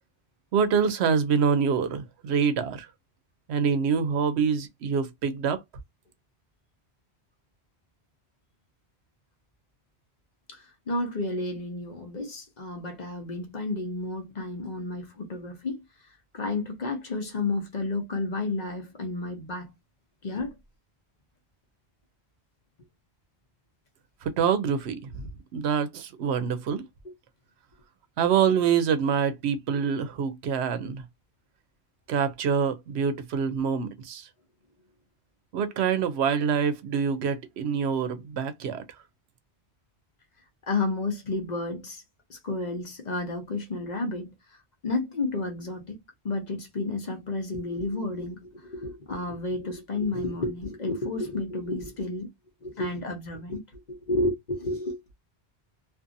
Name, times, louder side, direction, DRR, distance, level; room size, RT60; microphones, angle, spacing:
voice 1, 0.5-2.9 3.5-5.6 24.2-26.8 28.2-31.0 32.1-34.3 35.5-38.8, right 6 dB, 80° right, 0.8 m, -26 dB
voice 2, 10.5-19.7 20.2-20.5 27.0-27.1 40.6-42.0 42.3-44.6 44.8-46.0 46.2-52.3 52.6-55.0, left 2 dB, 45° left, 0.8 m, -31 dB
2.5 x 2.5 x 2.5 m
omnidirectional pair, 1.1 m